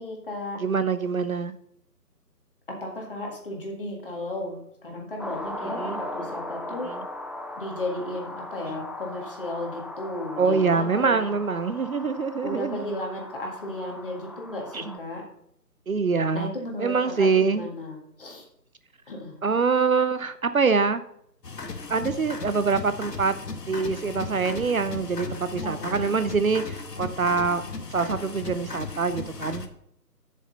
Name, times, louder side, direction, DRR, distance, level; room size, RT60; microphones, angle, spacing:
voice 1, 0.0-0.6 2.7-6.9 7.6-11.3 12.4-15.2 16.3-18.4 19.1-19.3 25.6-26.1, left 1 dB, 35° left, 0 dB, 1.8 m, -34 dB
voice 2, 0.6-1.5 5.6-6.0 6.8-7.1 8.7-8.8 10.4-12.9 14.7-15.0 15.9-16.5 16.8-17.7 19.4-21.0 21.9-23.4 23.7-27.6 27.9-29.7, right 5 dB, 60° right, 12 dB, 0.6 m, -25 dB
sound 1, 5.2-15.0, left 1 dB, 5° right, 0.3 m, -38 dB
sound 2, 21.4-29.7, left 4 dB, 75° left, 1.3 m, -36 dB
9.9 x 6.7 x 4.0 m, 0.71 s
figure-of-eight pair, 165°, 48 cm